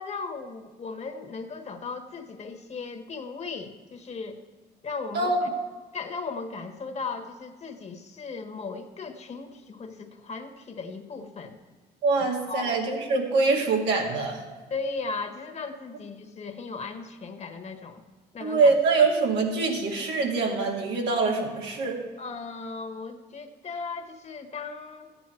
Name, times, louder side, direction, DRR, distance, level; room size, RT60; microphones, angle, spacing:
voice 1, 0.0-4.4 4.8-5.3 5.9-11.6 12.2-12.8 14.7-18.0 18.3-18.7 22.2-25.1, left 4 dB, 40° left, 6 dB, 1.4 m, -37 dB
voice 2, 12.0-14.4 18.4-22.0, right 3 dB, 90° right, -1 dB, 2.2 m, -24 dB
13.5 x 9.4 x 4.6 m, 1.4 s
cardioid pair, 90°, 17 cm